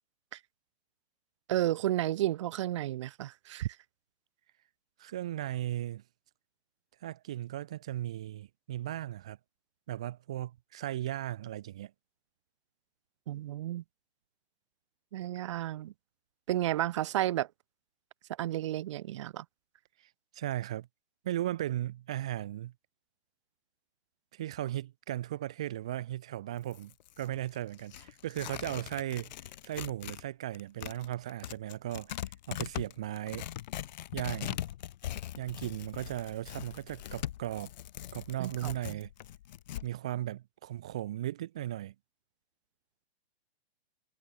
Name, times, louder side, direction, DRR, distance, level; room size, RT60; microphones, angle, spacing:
voice 1, 1.5-3.8 13.3-13.8 15.1-15.9 16.5-17.5 18.4-19.4 38.4-39.0, right 14 dB, 30° right, 0.8 m, -32 dB
voice 2, 5.0-6.0 7.0-9.4 9.9-11.9 20.3-20.9 21.2-22.7 24.3-29.3 29.6-32.2 32.5-33.5 34.1-34.6 35.4-37.7 38.1-39.1 39.8-41.9, right 13 dB, 5° right, 0.4 m, -36 dB
Tearing, 26.6-30.3 30.5-39.9, left 12 dB, 45° left, 3.4 m, -41 dB
hypercardioid pair, 170°, 32 cm